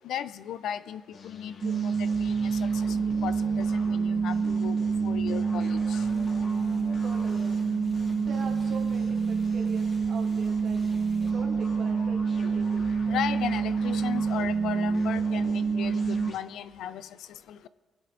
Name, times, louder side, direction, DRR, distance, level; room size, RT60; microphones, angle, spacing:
voice 1, 0.0-4.4 4.6-4.8 5.0-6.0 13.1-17.7, left 10 dB, 80° left, 14 dB, 0.4 m, -36 dB
sound 1, 1.1-16.4, left 3 dB, 60° left, 1.3 m, -44 dB
sound 2, 1.6-16.3, right 5 dB, 35° right, 0.4 m, -27 dB
sound 3, 6.0-11.3, left 1 dB, 20° left, 3.8 m, -55 dB
voice 2, 7.0-7.8 8.2-10.8 11.3-12.8, right 5 dB, 65° right, 0 dB, 2.2 m, -42 dB
22.0 x 10.5 x 2.6 m, 1.4 s
cardioid pair, 90°, 0 cm